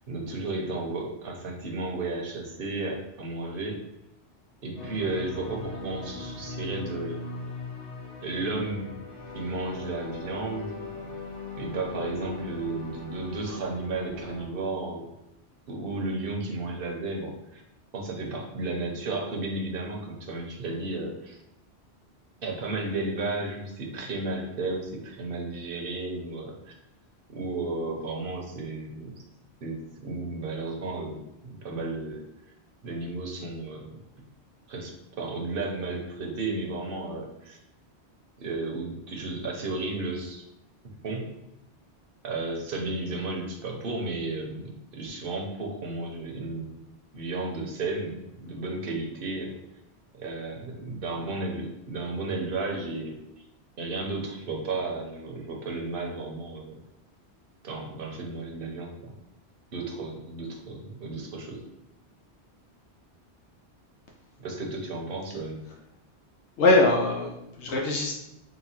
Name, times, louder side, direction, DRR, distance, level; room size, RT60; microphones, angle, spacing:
voice 1, 0.1-3.8 4.6-7.2 8.2-8.9 9.3-10.8 11.6-15.1 15.7-17.6 17.9-21.4 22.4-26.7 27.3-29.2 29.6-32.2 32.8-34.0 34.7-37.6 38.4-40.4 40.8-41.3 42.2-46.8 47.1-49.6 50.2-53.2 53.8-56.8 57.6-59.1 59.7-61.6 64.4-65.7, right 2 dB, 55° right, 0 dB, 1.0 m, -33 dB
sound 1, 4.8-14.5, left 3 dB, 55° left, 1.1 m, -39 dB
voice 2, 66.6-68.1, left 2 dB, 85° left, -1 dB, 0.9 m, -22 dB
3.9 x 2.1 x 4.2 m, 0.85 s
omnidirectional pair, 1.1 m